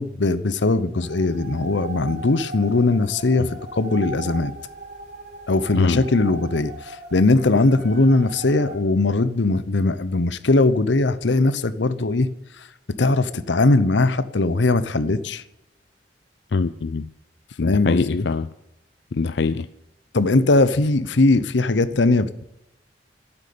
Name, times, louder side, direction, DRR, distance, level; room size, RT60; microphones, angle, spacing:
voice 1, 0.0-4.5 5.5-12.3 13.0-15.4 17.6-18.3 20.1-22.4, left 2 dB, 85° left, 0.8 m, -20 dB
sound 1, 1.0-8.8, right 2 dB, 45° right, 5.1 m, -38 dB
voice 2, 16.5-17.1 17.6-18.5 19.1-19.7, left 4 dB, 65° left, 0.5 m, -23 dB
12.0 x 8.9 x 8.5 m
head